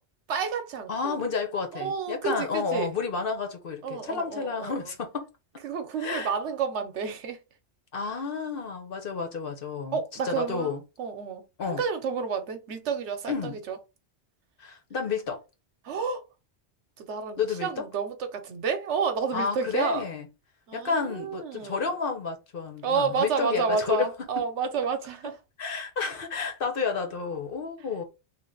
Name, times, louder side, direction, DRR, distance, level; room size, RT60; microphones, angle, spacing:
voice 1, 0.3-1.2 1.7-3.0 3.8-4.9 5.6-7.4 9.9-10.7 11.0-13.8 15.8-16.2 17.0-20.0 20.7-21.9 22.8-25.4, right 5 dB, 85° right, 1.1 m, -30 dB
voice 2, 0.9-5.3 6.0-6.3 7.9-10.8 11.6-11.8 13.3-13.6 14.6-15.4 17.4-17.9 19.3-20.3 20.7-24.1 24.4-24.5 25.6-28.0, left 5 dB, 55° left, 1.0 m, -31 dB
3.2 x 2.5 x 3.7 m
omnidirectional pair, 1.1 m